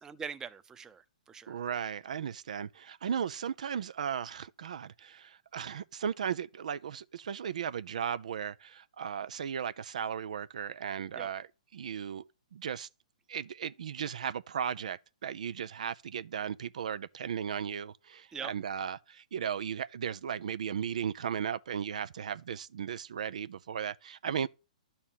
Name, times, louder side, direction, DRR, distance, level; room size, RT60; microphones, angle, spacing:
voice 1, 0.0-1.6 11.2-11.3 18.3-18.5, right 6 dB, 15° right, 0.7 m, -42 dB
voice 2, 1.5-12.2 12.5-12.9 13.3-24.5, right 8 dB, 65° right, 0.4 m, -36 dB
11.5 x 4.3 x 7.3 m
hypercardioid pair, 125°, 4 cm